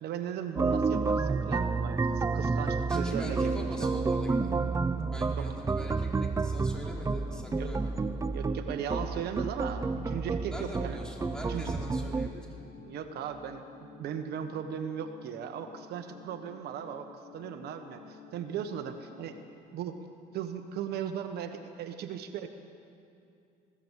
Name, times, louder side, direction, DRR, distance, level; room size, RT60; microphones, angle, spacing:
voice 1, 0.0-3.9 5.3-5.5 7.5-7.7 8.3-11.0 11.5-11.7 12.8-19.3 19.7-20.0 20.3-22.5, right 8 dB, 70° right, 7 dB, 1.3 m, -37 dB
sound 1, 0.6-12.3, right 4 dB, 20° right, 0.6 m, -30 dB
voice 2, 2.9-4.5 5.1-6.1 6.4-7.9 10.5-12.7, equal, 5° left, -2 dB, 4.5 m, -43 dB
sound 2, 3.6-19.5, left 6 dB, 90° left, 3.6 m, -52 dB
21.0 x 17.0 x 8.2 m, 2.6 s
cardioid pair, 110°, 17 cm